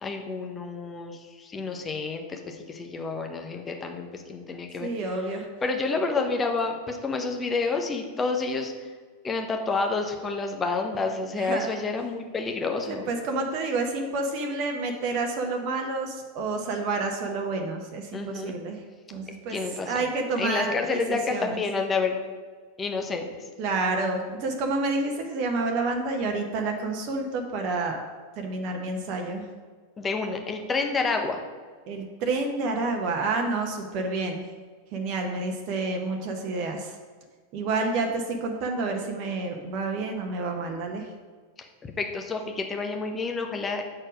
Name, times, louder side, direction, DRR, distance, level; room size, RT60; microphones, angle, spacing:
voice 1, 0.0-4.9 5.6-8.9 9.2-13.1 18.1-18.5 19.5-20.0 20.4-22.2 22.8-23.5 30.0-31.4 41.8-43.8, left 4 dB, 20° left, 4 dB, 0.9 m, -29 dB
voice 2, 4.8-5.5 11.3-11.8 12.9-18.8 19.1-19.6 19.9-21.6 23.6-28.0 28.4-29.5 31.9-34.4 34.9-37.0 37.5-41.1, right 3 dB, 40° right, 2 dB, 0.8 m, -29 dB
6.5 x 4.5 x 6.1 m, 1.5 s
figure-of-eight pair, 90°, 0 cm